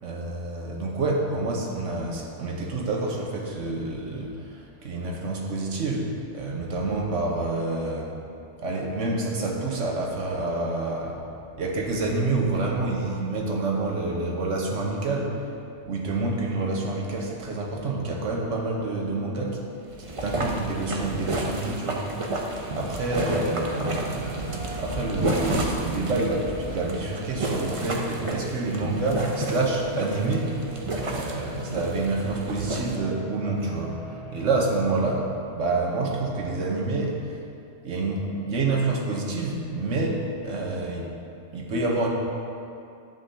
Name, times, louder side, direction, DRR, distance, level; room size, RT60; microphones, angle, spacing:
voice 1, 0.0-8.1 8.6-11.2 11.6-15.5 15.9-19.6 20.2-22.1 22.7-30.5 31.1-34.0 34.3-35.3 35.5-37.4 37.8-41.1 41.5-42.1, right 2 dB, 80° right, -1 dB, 1.4 m, -28 dB
sound 1, 19.8-33.0, right 2 dB, 35° right, 0.7 m, -31 dB
sound 2, 23.3-35.2, right 3 dB, 55° right, 1.6 m, -40 dB
11.0 x 7.9 x 2.8 m, 2.5 s
omnidirectional pair, 1.3 m